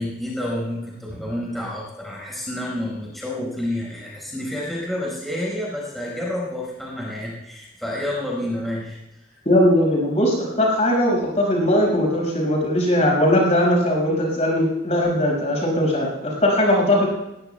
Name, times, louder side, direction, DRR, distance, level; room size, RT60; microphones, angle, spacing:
voice 1, 0.0-9.4, left 1 dB, ahead, -4 dB, 4.8 m, -29 dB
voice 2, 9.4-17.0, left 1 dB, 40° left, -1 dB, 5.6 m, -19 dB
21.0 x 20.0 x 2.3 m, 0.94 s
head